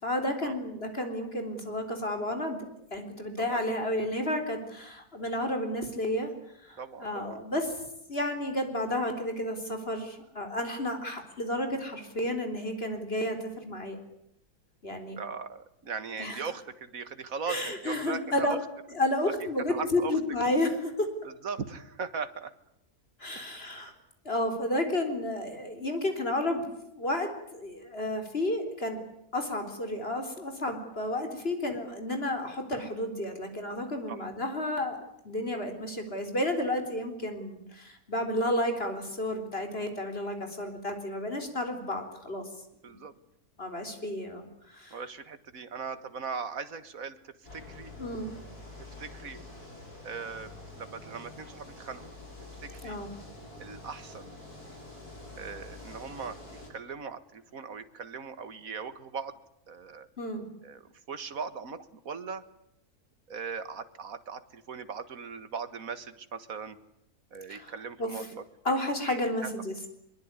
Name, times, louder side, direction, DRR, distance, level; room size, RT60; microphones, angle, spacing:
voice 1, 0.0-2.7 2.9-6.3 6.6-7.7 8.1-14.0 14.8-15.2 16.2-16.4 17.5-18.6 18.9-21.1 23.2-23.9 24.2-29.0 29.3-35.0 35.2-42.4 43.6-45.0 48.0-48.3 52.8-53.1 60.2-60.5 67.5-67.7 68.0-68.1 68.6-69.8, left 1 dB, 40° left, 6 dB, 4.2 m, -31 dB
voice 2, 6.8-7.4 15.1-18.6 19.7-20.2 21.2-22.5 23.4-23.5 34.1-34.2 42.8-43.1 44.9-47.9 49.0-49.4 50.0-52.2 52.6-53.0 53.6-54.4 55.4-59.3 59.7-60.1 60.6-60.8 61.1-62.4 63.3-66.8 67.3-68.4 69.0-69.5, right 5 dB, 60° right, 12 dB, 2.0 m, -39 dB
sound 1, 47.4-56.7, left 2 dB, 85° left, 7.1 m, -47 dB
23.5 x 22.5 x 9.8 m, 0.79 s
omnidirectional pair, 1.6 m